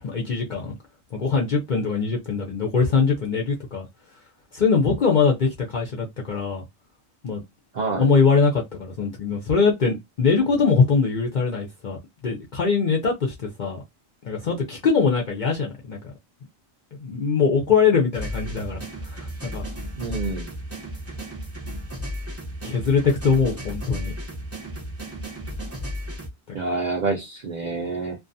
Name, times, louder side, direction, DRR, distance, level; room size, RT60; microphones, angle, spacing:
voice 1, 0.0-0.7 1.1-3.9 4.5-6.6 7.2-7.4 7.9-13.8 14.2-16.0 17.0-18.8 19.0-19.6 22.6-24.1, left 5 dB, 55° left, 0.5 m, -22 dB
voice 2, 7.7-8.1 20.0-20.5 26.5-28.2, right 3 dB, 85° right, 0.4 m, -27 dB
sound 1, 18.1-26.3, equal, 15° right, 0.6 m, -34 dB
2.4 x 2.3 x 2.6 m
omnidirectional pair, 1.4 m